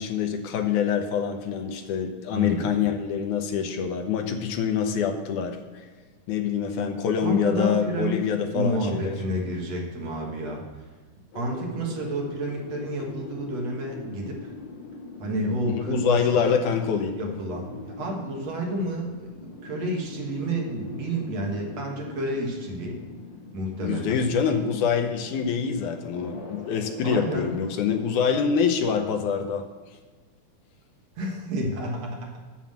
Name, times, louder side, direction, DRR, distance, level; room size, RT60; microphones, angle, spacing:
voice 1, 0.0-5.8 6.3-9.1 15.7-17.2 23.8-29.7, left 7 dB, 80° left, 6 dB, 2.3 m, -25 dB
voice 2, 2.3-2.7 7.2-8.2 8.5-10.6 11.3-14.5 15.2-16.4 17.1-23.0 23.5-24.2 27.0-27.5 31.2-32.4, right 1 dB, 60° right, 0 dB, 2.4 m, -30 dB
sound 1, 11.3-29.1, left 3 dB, 60° left, 2.6 m, -43 dB
7.5 x 7.2 x 7.3 m, 1.4 s
omnidirectional pair, 3.6 m